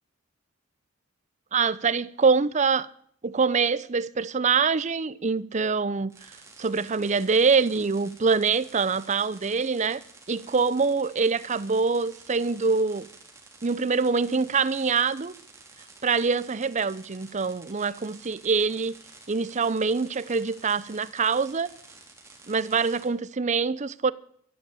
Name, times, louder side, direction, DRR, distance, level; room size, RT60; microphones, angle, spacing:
voice 1, 1.5-2.9 3.2-6.2 6.6-10.0 10.3-13.1 13.6-15.3 16.0-18.9 19.3-21.7 22.5-24.1, right 5 dB, 35° right, 0.6 m, -24 dB
sound 1, 6.1-23.1, right 3 dB, 15° right, 3.4 m, -51 dB
12.5 x 12.5 x 8.5 m
head